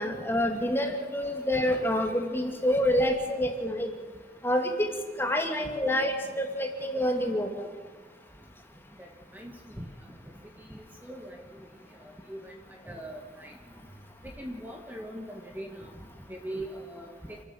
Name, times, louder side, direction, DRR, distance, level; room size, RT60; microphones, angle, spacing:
voice 1, 0.0-3.9 4.4-4.9 5.2-7.7, left 1 dB, 15° left, 3 dB, 2.3 m, -27 dB
voice 2, 10.7-11.4 12.3-12.5 12.9-13.5 14.2-15.9 16.3-17.4, right 1 dB, 10° right, 2 dB, 1.7 m, -40 dB
28.5 x 12.5 x 7.7 m, 1.5 s
head